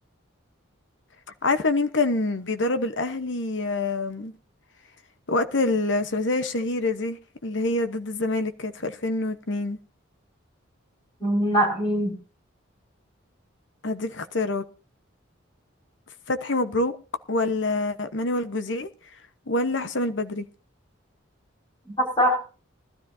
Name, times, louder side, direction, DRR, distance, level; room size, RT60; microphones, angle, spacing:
voice 1, 1.4-4.3 5.3-9.8 13.8-14.6 16.3-17.0 17.3-18.9 19.5-20.4, left 2 dB, 60° left, 1.1 m, -26 dB
voice 2, 11.2-12.1 21.9-22.4, equal, 20° left, 5.6 m, -22 dB
20.5 x 13.0 x 2.7 m
head